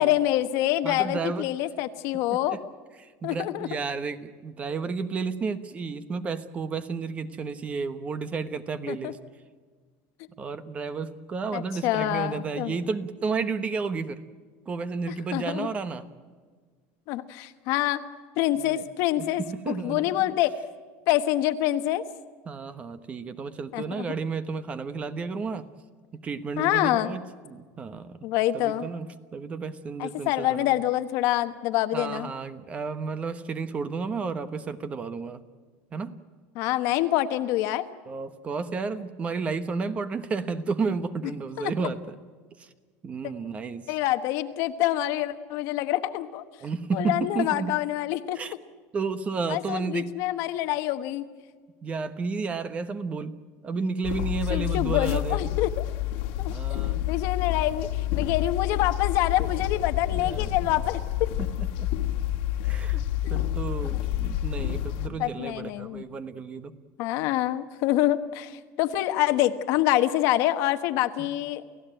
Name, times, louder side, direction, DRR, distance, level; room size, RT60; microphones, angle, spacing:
voice 1, 0.0-2.6 3.2-3.8 8.9-9.1 11.5-12.7 15.3-15.7 17.1-18.0 18.4-20.5 21.1-22.0 23.7-24.1 26.6-27.2 28.2-28.9 30.0-32.3 36.5-37.8 41.6-41.7 43.9-46.4 46.9-48.4 49.5-51.2 54.5-55.8 56.4-56.5 57.1-61.3 63.2-63.4 65.2-66.0 67.0-71.6, left 14 dB, 60° left, 10 dB, 1.3 m, -26 dB
voice 2, 0.8-1.5 2.5-2.6 3.0-9.2 10.4-14.2 14.7-16.0 18.6-18.8 19.2-20.3 22.5-25.7 26.1-28.2 28.5-29.1 29.3-30.7 31.9-35.4 35.9-36.1 38.1-42.1 42.6-42.7 43.0-43.9 46.6-47.7 48.3-48.5 48.9-50.1 51.8-53.4 53.6-55.5 56.5-57.0 60.1-60.5 61.4-61.9 62.6-63.0 63.3-66.7 71.2-71.3, right 4 dB, 20° right, 12 dB, 1.1 m, -32 dB
sound 1, 54.0-65.1, left 13 dB, 80° left, 2.1 m, -29 dB
29.5 x 16.0 x 9.1 m, 1.5 s
cardioid pair, 155°, 6 cm